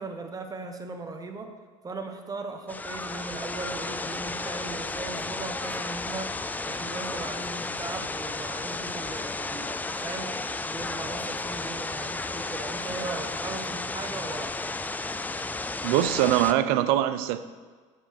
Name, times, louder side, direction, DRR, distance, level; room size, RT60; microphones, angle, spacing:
voice 1, 0.0-1.5 1.8-6.3 6.7-14.5, right 3 dB, 20° right, 4 dB, 1.1 m, -38 dB
sound 1, 2.7-16.5, left 3 dB, 10° left, 0.3 m, -33 dB
voice 2, 15.8-17.4, right 12 dB, 70° right, 12 dB, 0.5 m, -23 dB
7.1 x 5.6 x 4.9 m, 1.5 s
hypercardioid pair, 80°, 16 cm